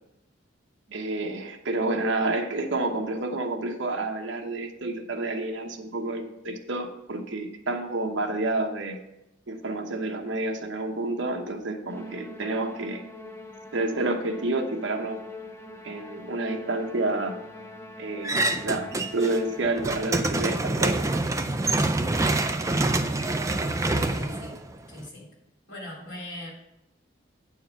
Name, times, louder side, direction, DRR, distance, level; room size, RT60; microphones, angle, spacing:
voice 1, 0.9-9.0 9.5-13.0 13.7-15.2 15.8-17.4 18.0-21.2, right 2 dB, 70° right, 3 dB, 1.0 m, -29 dB
Musical instrument, 11.9-20.4, left 1 dB, 15° left, 0.8 m, -43 dB
sound 1, 18.2-19.4 19.7-25.1, right 2 dB, 15° right, 0.3 m, -26 dB
voice 2, 23.8-24.6 24.9-25.3 25.7-26.5, left 1 dB, 65° left, -3 dB, 3.6 m, -39 dB
8.9 x 4.7 x 5.8 m, 0.90 s
head